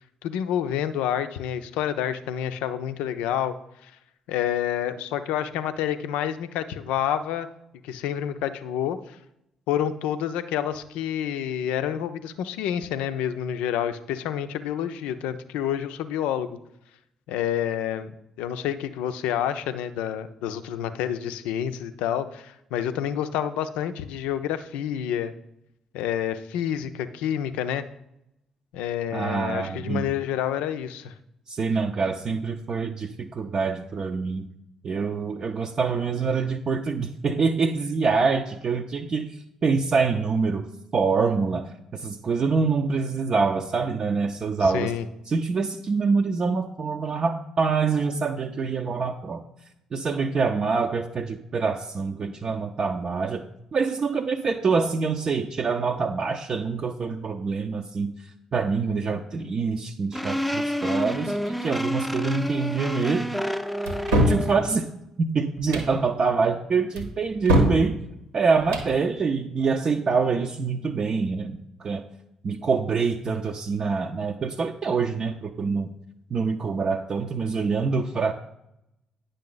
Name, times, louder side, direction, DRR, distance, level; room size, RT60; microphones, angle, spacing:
voice 1, 0.2-3.6 3.8-3.9 4.3-7.5 7.8-9.2 9.7-16.6 17.3-18.1 18.4-25.3 25.9-27.8 28.7-31.1 44.6-45.0, left 10 dB, 70° left, 11 dB, 0.5 m, -28 dB
voice 2, 29.1-30.0 31.5-34.5 34.8-39.3 39.6-40.6 40.9-44.9 45.3-49.4 49.9-53.4 53.7-58.1 58.5-63.2 64.3-64.9 65.2-68.0 68.3-72.0 72.4-75.9 76.3-78.3, right 4 dB, 45° right, 2 dB, 0.6 m, -25 dB
sound 1, 60.1-64.7, equal, ahead, 0.7 m, -28 dB
sound 2, 63.9-64.4 65.6-65.9 67.0-67.8 68.6-68.9, equal, 85° right, 1.2 m, -22 dB
9.4 x 6.6 x 3.9 m, 0.82 s
figure-of-eight pair, 45°, 2 cm